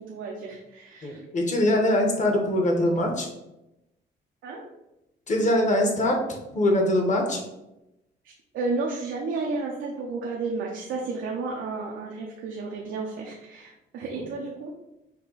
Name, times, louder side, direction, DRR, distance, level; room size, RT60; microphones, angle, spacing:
voice 1, 0.0-1.2 4.4-4.7 8.2-14.7, right 3 dB, 80° right, -1 dB, 0.7 m, -32 dB
voice 2, 1.0-3.3 5.3-6.2 6.5-7.4 14.1-14.3, left 1 dB, 40° left, 1 dB, 1.3 m, -23 dB
5.7 x 2.2 x 4.0 m, 0.91 s
cardioid pair, 90°, 20 cm